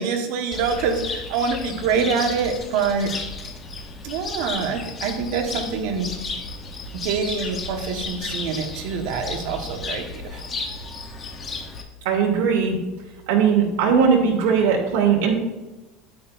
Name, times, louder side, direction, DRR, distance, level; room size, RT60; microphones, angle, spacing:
voice 1, 0.0-3.2 4.0-6.1 6.9-10.4, right 5 dB, 60° right, 3 dB, 1.3 m, -25 dB
Cricket, 0.5-11.8, left 4 dB, 20° left, 0.8 m, -33 dB
voice 2, 12.0-12.8 13.3-15.3, right 6 dB, 90° right, 0 dB, 2.3 m, -19 dB
9.3 x 9.0 x 2.6 m, 1.1 s
cardioid pair, 180°, 0 cm